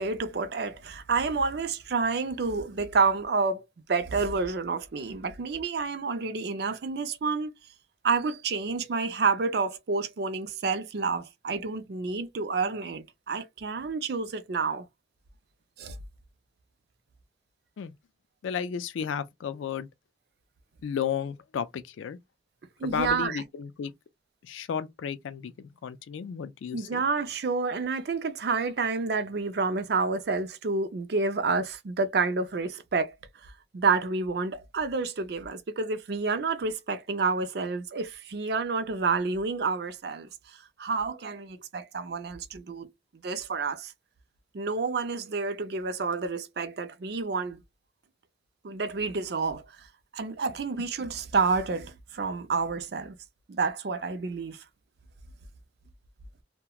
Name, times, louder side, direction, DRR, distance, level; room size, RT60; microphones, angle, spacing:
voice 1, 0.0-3.6 3.9-7.5 8.0-14.9 15.8-16.0 22.8-23.4 26.7-33.1 33.4-42.9 43.2-43.9 44.5-47.6 48.6-49.9 50.1-53.2 53.5-54.6, right 4 dB, 55° right, 0.4 m, -29 dB
voice 2, 18.4-19.9 20.8-22.2 22.8-23.9 24.4-27.0, left 7 dB, 85° left, 0.3 m, -33 dB
2.8 x 2.1 x 2.3 m
head